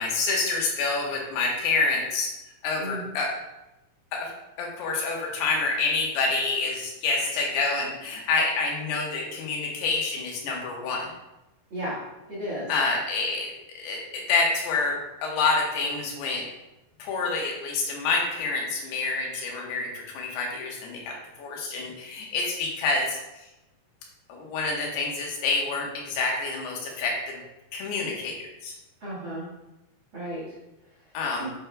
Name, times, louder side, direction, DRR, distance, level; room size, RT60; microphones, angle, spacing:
voice 1, 0.0-2.3 2.6-3.3 4.1-4.3 4.6-11.1 12.7-16.5 17.0-23.4 24.3-27.4 27.7-28.7 31.1-31.5, left 3 dB, 75° left, -1 dB, 3.0 m, -27 dB
voice 2, 12.3-12.7 29.0-29.5 30.1-30.5 31.4-31.5, equal, 80° right, -8 dB, 1.1 m, -33 dB
7.9 x 6.2 x 2.2 m, 0.96 s
omnidirectional pair, 4.9 m